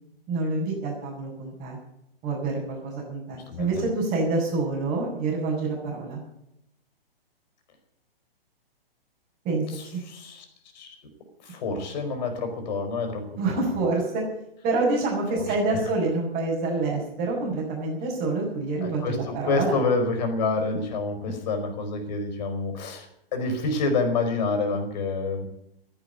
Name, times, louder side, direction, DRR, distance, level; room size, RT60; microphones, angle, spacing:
voice 1, 0.3-1.8 2.2-6.2 9.4-9.6 9.9-10.0 13.4-14.2 14.6-19.8, right 3 dB, 25° right, -6 dB, 5.8 m, -27 dB
voice 2, 3.5-3.8 9.7-10.4 10.7-10.9 11.4-13.3 15.3-15.8 18.8-25.5, left 3 dB, 45° left, 5 dB, 4.9 m, -28 dB
14.5 x 11.0 x 9.3 m, 0.81 s
figure-of-eight pair, 125°, 30 cm